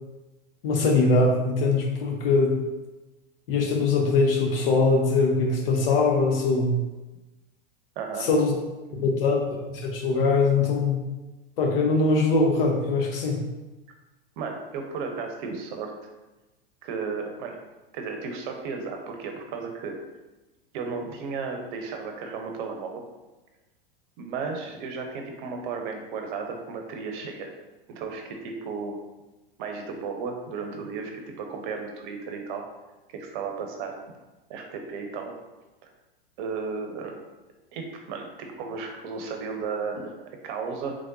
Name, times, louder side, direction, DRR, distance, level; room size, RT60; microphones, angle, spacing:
voice 1, 0.6-2.6 3.5-6.7 8.2-8.5 9.0-9.4 9.7-11.0 11.6-13.4, left 3 dB, 70° left, 1 dB, 0.9 m, -22 dB
voice 2, 8.0-8.3 9.0-9.1 14.4-16.1 16.8-17.6 17.9-20.0 20.7-23.0 24.2-27.5 27.9-29.0 29.6-32.6 33.1-34.0 34.5-35.3 35.8-35.9 36.4-37.2 37.7-41.0, right 5 dB, 55° right, 3 dB, 0.8 m, -34 dB
3.6 x 3.2 x 2.6 m, 1.1 s
hypercardioid pair, 100°, 29 cm